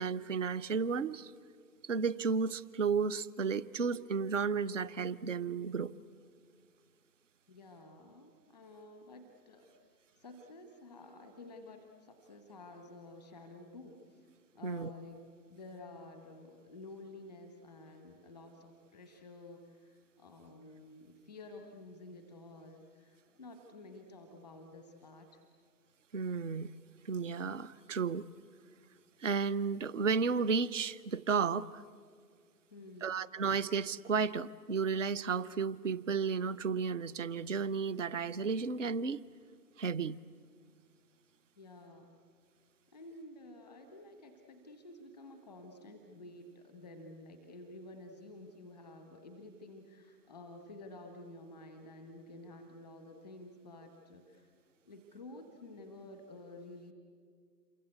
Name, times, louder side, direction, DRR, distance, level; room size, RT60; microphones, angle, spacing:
voice 1, 0.0-1.3 1.8-5.9 14.6-14.9 26.1-26.7 27.0-28.3 29.2-31.8 33.0-39.2 39.8-40.2, right 5 dB, 50° right, 19 dB, 0.7 m, -33 dB
voice 2, 7.5-14.3 14.5-15.2 15.5-25.4 32.7-33.2 41.6-42.1 42.9-54.5 54.8-56.9, left 2 dB, ahead, 5 dB, 0.9 m, -51 dB
28.0 x 24.0 x 8.2 m, 2.1 s
figure-of-eight pair, 140°, 48 cm